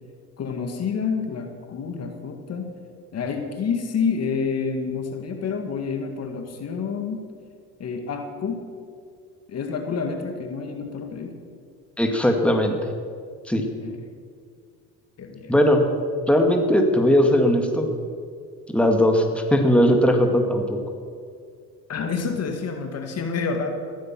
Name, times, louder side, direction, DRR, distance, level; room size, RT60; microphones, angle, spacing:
voice 1, 0.4-2.7 3.1-7.2 7.8-8.6 9.5-11.4 13.8-14.0 15.2-15.5 21.9-23.7, left 5 dB, 55° left, 5 dB, 2.1 m, -28 dB
voice 2, 12.0-12.9 13.5-13.6 15.5-15.9 16.3-17.9 18.7-20.8, equal, 5° left, 3 dB, 2.1 m, -19 dB
15.0 x 13.5 x 6.1 m, 2.1 s
supercardioid pair, 85°, 31 cm